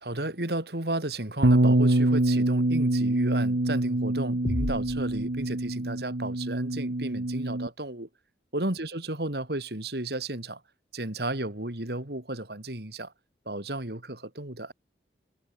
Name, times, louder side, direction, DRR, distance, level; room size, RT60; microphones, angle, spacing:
voice 1, 0.0-8.1 8.5-10.6 10.9-13.1 13.4-14.7, right 1 dB, 65° right, 3.1 m, -33 dB
Bass guitar, 1.4-7.7, right 1 dB, 85° right, 1.5 m, -25 dB
sound 1, 4.4-6.2, left 1 dB, 80° left, 1.5 m, -35 dB
head